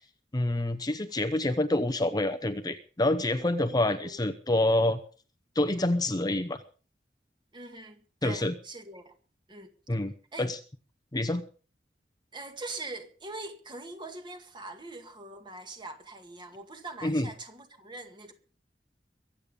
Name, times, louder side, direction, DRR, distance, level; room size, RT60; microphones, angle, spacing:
voice 1, 0.3-5.0 5.5-6.6 8.2-8.5 9.9-10.1 10.4-10.6 11.1-11.4 17.0-17.3, left 1 dB, 25° left, 0.8 m, -27 dB
voice 2, 7.5-9.1 9.5-9.7 10.3-10.5 12.3-18.3, right 2 dB, 25° right, 2.1 m, -42 dB
22.5 x 8.7 x 5.3 m
head